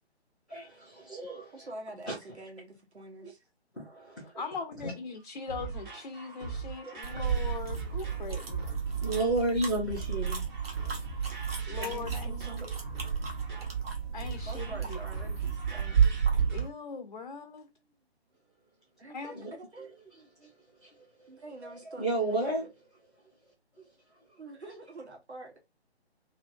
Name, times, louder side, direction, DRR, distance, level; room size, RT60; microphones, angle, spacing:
voice 1, 0.5-1.7 2.1-2.2 3.7-4.3 4.8-4.9 9.0-10.4 19.3-19.5 19.8-20.1 20.4-20.5 20.8-22.6 23.8-23.9 24.3-24.4, right 2 dB, ahead, 0.6 m, -33 dB
voice 2, 1.5-3.4 8.9-9.0 11.6-12.7 14.4-16.2 19.0-20.5 21.3-22.7 24.4-25.6, right 2 dB, 80° right, 1.3 m, -46 dB
voice 3, 4.4-8.7 11.7-12.5 14.1-15.0 16.5-17.7 19.1-19.3, left 5 dB, 45° left, 0.4 m, -40 dB
sound 1, 5.2-16.7, right 5 dB, 45° right, 1.3 m, -40 dB
sound 2, 7.0-16.7, right 7 dB, 60° right, 1.1 m, -32 dB
2.8 x 2.6 x 2.6 m
figure-of-eight pair, 145°, 33 cm